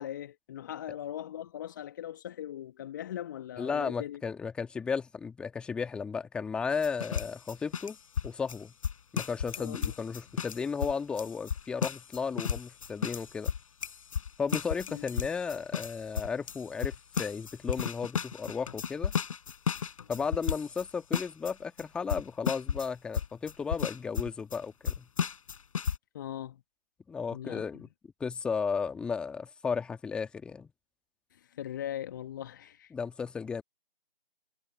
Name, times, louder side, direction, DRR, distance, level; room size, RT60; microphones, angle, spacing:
voice 1, 0.0-4.2 9.6-9.9 14.9-15.0 26.1-26.6 27.3-27.9 31.3-32.9, left 11 dB, 20° left, 1.6 m, -40 dB
voice 2, 3.6-8.0 8.2-8.7 9.1-13.5 14.4-19.1 20.1-25.1 27.1-27.9 28.2-30.7 32.9-33.6, left 5 dB, 5° left, 1.9 m, -34 dB
sound 1, 6.7-20.9 21.1-21.5 21.8-21.9 22.1-22.9 23.1-24.6 24.9-26.0, left 7 dB, 35° left, 6.9 m, -34 dB
figure-of-eight pair, 150°, 29 cm